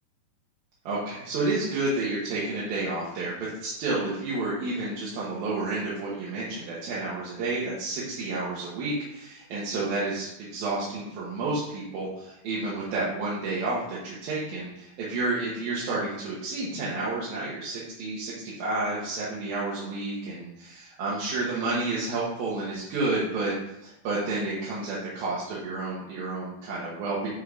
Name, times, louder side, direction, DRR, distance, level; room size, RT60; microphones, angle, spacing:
voice 1, 0.8-23.5 23.8-27.3, right 2 dB, 90° right, -7 dB, 3.3 m, -30 dB
10.5 x 4.8 x 3.8 m, 0.85 s
omnidirectional pair, 4.0 m